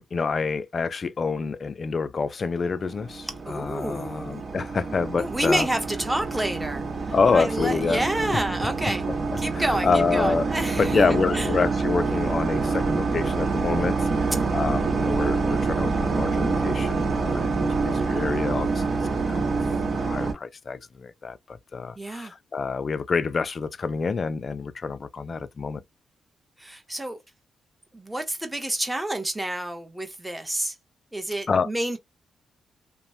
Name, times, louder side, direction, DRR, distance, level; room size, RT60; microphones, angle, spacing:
voice 1, 0.0-5.7 7.1-8.0 9.5-10.5 10.8-18.9 19.3-19.6 19.9-25.8 31.5-31.7, left 4 dB, 45° left, 0.3 m, -27 dB
sound 1, 2.8-20.3, right 4 dB, 50° right, 0.9 m, -26 dB
voice 2, 3.4-4.4 5.2-9.1 9.4-11.5 22.0-22.3 26.6-27.2 27.9-30.7 31.1-32.0, right 1 dB, 10° right, 0.9 m, -29 dB
3.0 x 2.1 x 2.7 m
cardioid pair, 75°, 0 cm